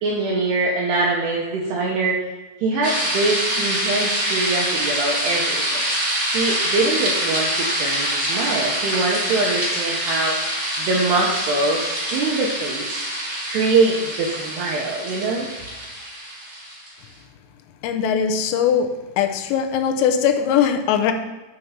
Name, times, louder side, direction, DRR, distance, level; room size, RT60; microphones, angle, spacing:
voice 1, 0.0-2.2 2.6-5.8 6.3-10.4 10.8-12.9 13.5-15.5, right 3 dB, 75° right, -2 dB, 2.5 m, -23 dB
sound 1, 2.8-16.9, right 1 dB, 60° right, 0.8 m, -25 dB
voice 2, 17.8-18.9 19.2-21.1, left 8 dB, 85° left, 5 dB, 3.4 m, -20 dB
11.0 x 5.0 x 5.8 m, 1.2 s
omnidirectional pair, 5.9 m